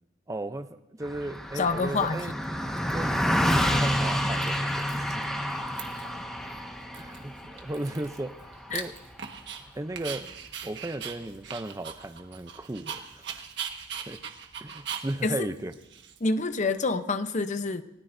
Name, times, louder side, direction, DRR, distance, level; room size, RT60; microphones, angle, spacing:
voice 1, 0.3-2.3 2.9-5.3 6.9-8.9 9.7-10.3 10.6-13.3 14.0-14.2 14.6-15.7, right 1 dB, 15° right, 10 dB, 0.5 m, -36 dB
Car passing by, 1.0-10.6, equal, 5° left, 1.3 m, -29 dB
Dog, 1.2-1.3 2.0-2.4 2.8-3.5 3.8-3.9 4.2-5.2 5.5-6.2 6.5-6.6 6.9-9.6 10.0-16.6, right 7 dB, 60° right, 1.4 m, -40 dB
voice 2, 1.5-2.3 8.7-8.8 15.2-15.5 16.2-17.8, left 3 dB, 40° left, 10 dB, 0.7 m, -27 dB
29.0 x 17.5 x 2.6 m, 0.91 s
head